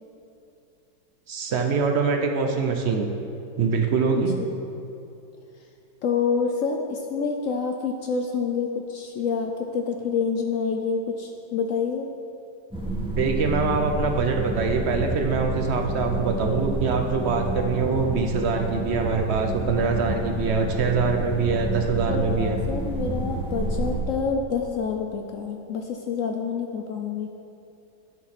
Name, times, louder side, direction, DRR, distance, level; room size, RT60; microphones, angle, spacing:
voice 1, 1.3-3.1 3.6-4.4 13.0-22.6, right 4 dB, 70° right, 3 dB, 0.6 m, -24 dB
voice 2, 4.2-4.6 6.0-12.1 21.5-21.6 22.1-27.3, left 5 dB, 70° left, 3 dB, 0.8 m, -27 dB
sound 1, 12.7-24.0, right 2 dB, 5° right, 1.1 m, -29 dB
10.0 x 7.2 x 4.2 m, 2.7 s
omnidirectional pair, 1.9 m